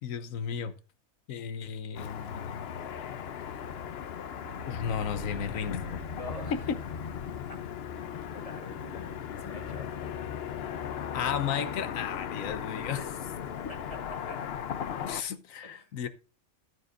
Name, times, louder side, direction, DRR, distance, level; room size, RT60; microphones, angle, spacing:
voice 1, 0.0-0.7 1.3-2.6 4.7-6.0 6.5-6.6 11.1-13.0 15.1-16.1, left 8 dB, 85° left, 1.3 m, -34 dB
Car passing by / Traffic noise roadway noise, 2.0-15.2, left 8 dB, 55° left, 0.8 m, -37 dB
sound 1, 4.2-7.1 7.4-7.5, right 3 dB, 45° right, 0.8 m, -48 dB
voice 2, 6.1-6.7 7.5-7.6 7.9-9.9 12.8-13.1 13.7-14.0 14.3-14.4 15.6-15.9, left 1 dB, 25° left, 2.1 m, -45 dB
13.5 x 9.6 x 2.5 m
omnidirectional pair, 1.4 m